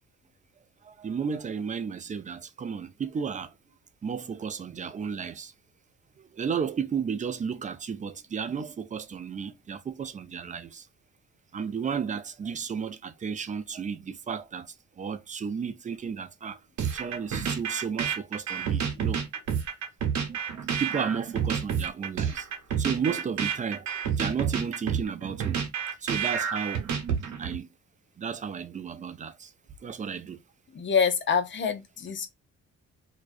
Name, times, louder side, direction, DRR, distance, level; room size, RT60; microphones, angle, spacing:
voice 1, 0.8-3.5 4.0-5.5 6.2-10.9 11.5-16.6 16.9-19.2 20.5-22.5 22.8-25.6 26.0-26.9 27.4-27.7 28.2-29.5 29.8-30.4, right 6 dB, 25° right, 0.3 m, -33 dB
sound 1, 16.8-27.6, right 7 dB, 70° right, 0.9 m, -29 dB
voice 2, 30.7-32.3, left 6 dB, 40° left, 0.6 m, -26 dB
2.3 x 2.2 x 2.5 m
cardioid pair, 90°, 30 cm